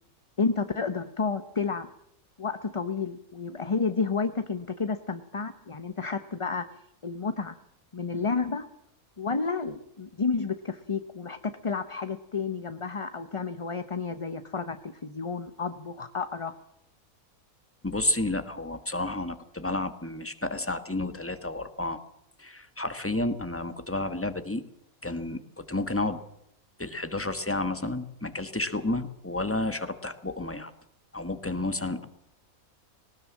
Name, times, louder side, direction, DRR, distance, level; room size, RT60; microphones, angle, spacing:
voice 1, 0.4-1.9 2.4-6.6 7.0-7.6 7.9-8.7 9.2-16.5, left 4 dB, 25° left, 10 dB, 0.8 m, -31 dB
voice 2, 17.8-22.0 22.4-24.6 25.0-26.2 26.8-30.7 31.1-32.1, left 2 dB, 10° left, 10 dB, 1.4 m, -31 dB
20.0 x 19.0 x 7.4 m, 0.76 s
omnidirectional pair, 1.5 m